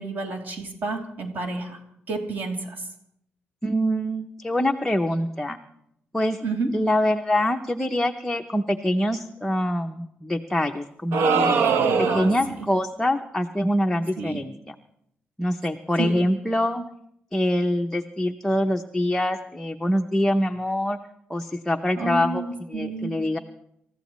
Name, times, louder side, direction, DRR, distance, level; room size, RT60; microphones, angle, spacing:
voice 1, 0.0-1.8 2.1-2.8 6.4-6.7 11.9-12.3 14.2-14.4 16.0-16.2 22.0-23.2, right 3 dB, 50° right, 1 dB, 2.9 m, -30 dB
voice 2, 3.6-5.6 6.1-6.4 6.7-11.5 12.0-14.7 15.4-16.8 17.3-21.0 21.3-23.4, left 1 dB, 5° left, 3 dB, 0.6 m, -24 dB
sound 1, 11.1-12.5, right 5 dB, 85° right, 0.9 m, -21 dB
27.5 x 14.5 x 3.1 m, 0.75 s
cardioid pair, 150°, 4 cm